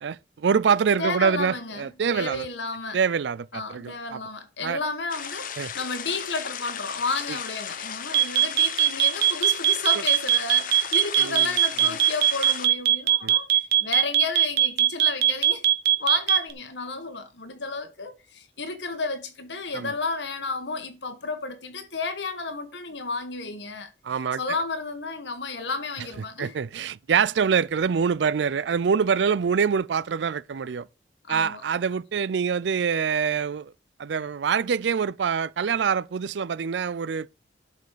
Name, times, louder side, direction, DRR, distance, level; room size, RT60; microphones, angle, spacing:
voice 1, 0.0-2.5 2.9-4.2 4.6-4.8 5.6-5.7 7.3-7.4 11.2-11.5 13.2-13.3 19.7-19.9 24.0-24.4 26.4-30.8 31.3-33.7 34.0-37.3, right 6 dB, 80° right, 0.4 m, -25 dB
voice 2, 1.0-3.0 3.5-15.6 16.0-26.6 31.3-31.6, left 3 dB, 85° left, 1.8 m, -32 dB
sound 1, 5.1-12.7, left 8 dB, 50° left, 0.9 m, -36 dB
sound 2, 8.1-16.5, right 11 dB, 60° right, 1.1 m, -19 dB
11.5 x 5.4 x 5.0 m
head